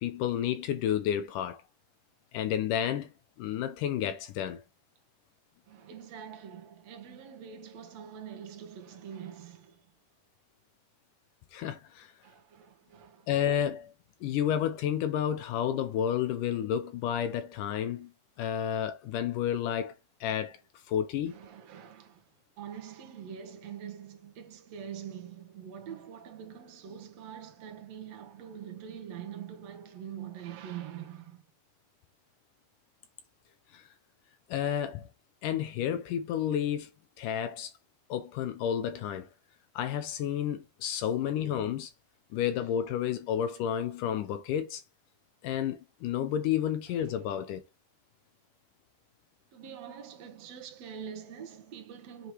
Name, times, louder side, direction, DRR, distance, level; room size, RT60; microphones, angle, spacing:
voice 1, 0.0-1.6 2.3-3.1 3.4-4.6 11.5-12.1 13.3-13.9 14.2-18.1 18.4-19.9 20.2-20.6 20.9-21.3 33.7-33.9 34.5-35.1 35.4-36.9 37.2-37.7 38.1-39.3 39.8-41.9 42.3-44.8 45.4-47.6, left 9 dB, 75° left, 2.0 m, -31 dB
voice 2, 5.7-9.8 12.2-13.3 21.3-22.2 22.6-31.4 49.5-52.3, right 8 dB, 60° right, 1.9 m, -44 dB
8.0 x 3.3 x 4.6 m
omnidirectional pair, 4.5 m